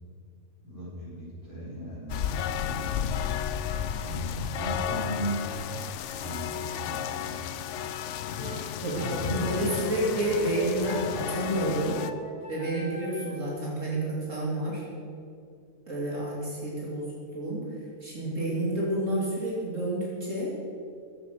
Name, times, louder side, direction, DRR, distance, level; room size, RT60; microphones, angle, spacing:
voice 1, 0.6-3.1 4.0-5.5 6.1-7.3 8.8-9.4, right 1 dB, 25° right, -11 dB, 4.8 m, -37 dB
sound 1, 2.1-12.1, left 9 dB, 65° left, 0.9 m, -33 dB
sound 2, 8.4-13.5, equal, 30° left, 1.6 m, -42 dB
voice 2, 8.8-12.0 12.5-14.8 15.9-17.1 17.3-17.6 18.0-20.5, right 1 dB, 65° right, -5 dB, 3.3 m, -29 dB
15.5 x 10.5 x 6.8 m, 2.4 s
omnidirectional pair, 1.4 m